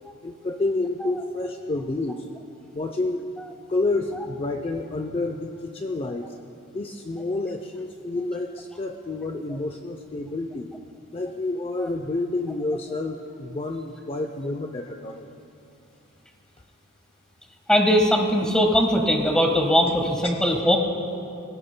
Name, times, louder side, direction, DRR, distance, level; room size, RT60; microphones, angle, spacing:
voice 1, 0.2-2.3 2.7-3.3 3.7-6.3 6.7-10.7 11.1-15.3, left 2 dB, 25° left, 4 dB, 0.5 m, -29 dB
voice 2, 17.7-20.8, equal, 5° left, 2 dB, 1.3 m, -20 dB
26.5 x 16.5 x 2.2 m, 2.7 s
head